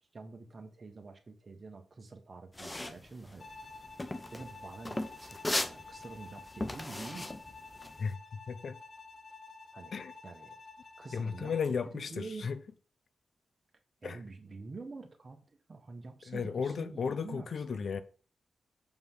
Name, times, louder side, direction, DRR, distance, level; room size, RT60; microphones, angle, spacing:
voice 1, 0.1-3.5 4.3-7.3 9.7-9.9 10.2-10.5 11.0-11.5 11.9-12.5 14.0-15.4 15.7-17.8, right 3 dB, 40° right, 1.6 m, -47 dB
sound 1, 2.5-8.1, left 1 dB, 20° left, 0.7 m, -37 dB
Bowed string instrument, 3.4-11.8, left 4 dB, 50° left, 1.0 m, -51 dB
voice 2, 8.0-8.8 9.9-10.1 11.1-12.6 14.0-14.2 16.3-18.0, left 6 dB, 65° left, 0.7 m, -35 dB
6.9 x 5.5 x 3.9 m
cardioid pair, 85°, 0 cm